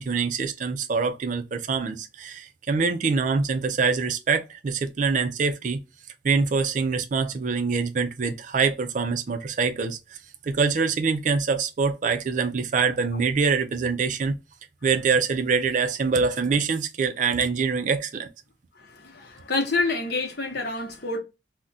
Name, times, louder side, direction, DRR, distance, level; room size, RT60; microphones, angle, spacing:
voice 1, 0.0-5.8 6.2-10.0 10.4-14.4 14.8-18.3, right 5 dB, 40° right, 0.4 m, -24 dB
voice 2, 18.8-21.2, left 3 dB, 55° left, 0.8 m, -28 dB
2.4 x 2.1 x 3.8 m
head